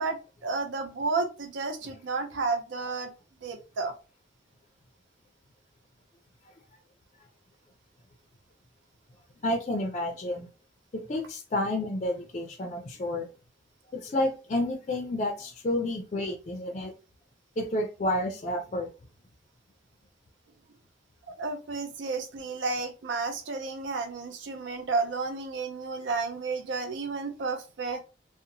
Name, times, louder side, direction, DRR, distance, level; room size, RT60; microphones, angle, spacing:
voice 1, 0.0-3.1 3.4-3.9 21.4-28.0, right 4 dB, 80° right, 0.4 m, -32 dB
voice 2, 9.4-10.5 10.9-13.3 13.9-16.9 17.6-18.9, left 1 dB, 35° left, 0.4 m, -30 dB
2.8 x 2.0 x 2.6 m
head